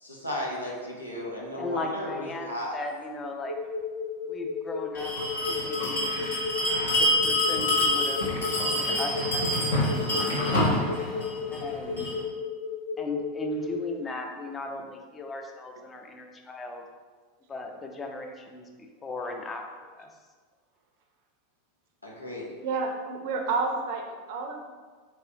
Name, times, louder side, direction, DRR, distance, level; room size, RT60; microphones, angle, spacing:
voice 1, 0.0-2.8 22.0-22.5, left 1 dB, 85° left, -3 dB, 0.7 m, -35 dB
voice 2, 1.5-3.5 4.3-5.1 5.5-6.3 6.9-8.2 8.6-10.0 11.5-12.1 13.0-16.8 17.5-20.1, left 2 dB, 20° left, 3 dB, 0.5 m, -37 dB
sound 1, 3.5-13.8, left 4 dB, 50° left, 0.9 m, -34 dB
Bell, 4.9-12.2, left 1 dB, 70° left, 1.2 m, -27 dB
voice 3, 22.6-24.6, right 4 dB, 55° right, 3 dB, 0.5 m, -30 dB
4.5 x 3.3 x 2.7 m, 1.5 s
figure-of-eight pair, 85°, 0 cm